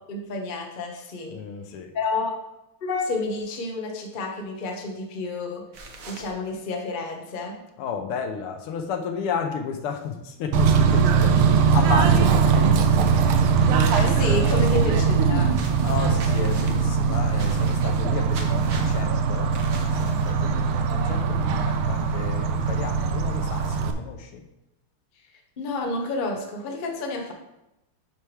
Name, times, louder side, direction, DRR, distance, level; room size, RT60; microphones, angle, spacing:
voice 1, 0.1-1.4 1.9-2.4 2.8-5.6 6.1-7.5 13.9-15.6 25.6-27.3, left 3 dB, 45° left, 2 dB, 0.6 m, -30 dB
voice 2, 1.3-1.9 7.8-12.9 14.7-14.8 15.8-24.4, left 6 dB, 90° left, 5 dB, 1.7 m, -33 dB
sound 1, 5.7-6.3 13.8-14.9 15.5-16.8 17.3-18.0 18.3-19.0 19.5-20.5, right 3 dB, 55° right, 1.0 m, -40 dB
Bird / Train, 10.5-23.9, right 6 dB, 80° right, 1.5 m, -21 dB
10.0 x 4.6 x 3.3 m, 0.90 s
omnidirectional pair, 2.4 m